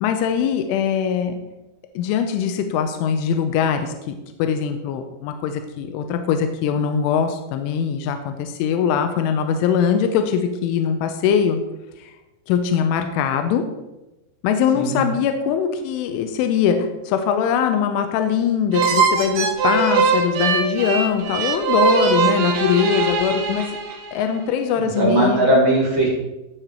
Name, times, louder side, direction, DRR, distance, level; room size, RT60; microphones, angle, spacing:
voice 1, 0.0-1.4 2.0-11.6 12.0-12.1 12.5-13.6 14.4-23.8 24.1-25.5, left 7 dB, 85° left, 6 dB, 3.2 m, -22 dB
sound 1, 18.7-24.2, right 5 dB, 90° right, 4.2 m, -21 dB
voice 2, 24.8-26.1, right 1 dB, 50° right, -4 dB, 1.5 m, -18 dB
14.5 x 5.8 x 4.5 m, 1.0 s
omnidirectional pair, 5.6 m